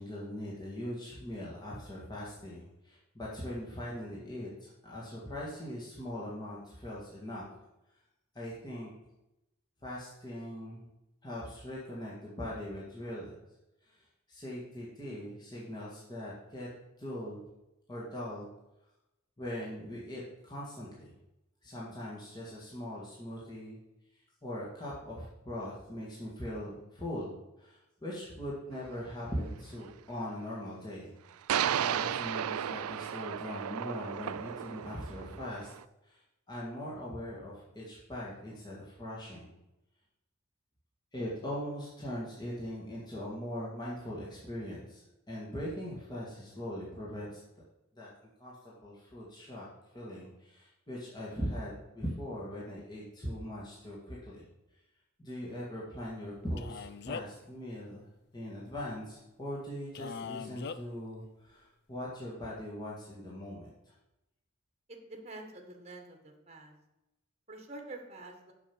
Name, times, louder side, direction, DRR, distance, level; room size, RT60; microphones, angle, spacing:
voice 1, 0.0-7.5 8.3-8.9 9.8-10.9 11.2-13.4 13.8-16.7 17.0-17.4 17.9-18.5 19.4-21.1 21.6-23.8 24.1-31.1 31.8-35.7 36.0-36.2 36.5-39.5 41.1-47.4 48.0-48.1 48.4-49.7 49.9-54.4 55.2-58.1 58.3-63.9, equal, 20° left, -6 dB, 1.8 m, -41 dB
sound 1, 28.8-28.9 31.5-35.8, right 9 dB, 80° right, 0.4 m, -34 dB
Male speech man speaking, 56.6-57.5 59.9-60.8, left 5 dB, 50° left, 0.4 m, -40 dB
voice 2, 64.9-66.7 67.5-68.5, right 2 dB, 30° right, 3 dB, 1.3 m, -47 dB
7.1 x 6.0 x 7.1 m, 0.93 s
head